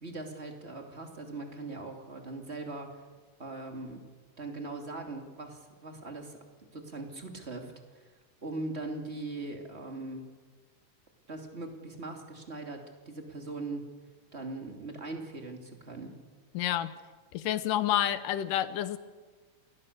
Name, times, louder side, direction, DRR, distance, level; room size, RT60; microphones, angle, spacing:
voice 1, 0.0-3.0 3.4-4.1 4.4-8.1 8.4-10.3 11.3-13.8 14.3-16.1, right 2 dB, 20° right, 3 dB, 2.7 m, -40 dB
voice 2, 16.5-16.9 17.3-19.0, left 12 dB, 90° left, 14 dB, 2.6 m, -29 dB
28.0 x 19.5 x 6.8 m, 1.4 s
omnidirectional pair, 3.7 m